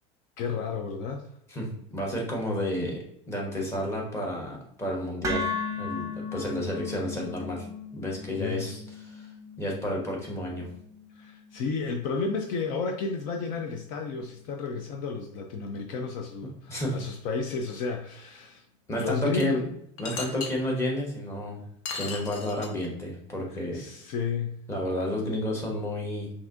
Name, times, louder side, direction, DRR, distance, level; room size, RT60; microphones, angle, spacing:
voice 1, 0.4-1.2 8.4-8.7 11.1-18.6 18.9-19.7 20.1-20.3 23.7-24.6, left 5 dB, 55° left, 4 dB, 0.5 m, -32 dB
voice 2, 1.5-5.5 5.8-7.7 7.9-9.3 9.6-10.7 16.7-17.0 18.9-19.6 20.0-21.6 21.9-23.8 24.7-26.3, left 1 dB, 15° left, -2 dB, 1.2 m, -31 dB
sound 1, 5.2-13.3, left 3 dB, 20° right, 0.8 m, -37 dB
sound 2, 19.4-19.5 20.0-20.5 21.8-22.9, left 4 dB, 80° left, 0.9 m, -36 dB
5.8 x 2.6 x 2.6 m, 0.72 s
supercardioid pair, 140°, 16 cm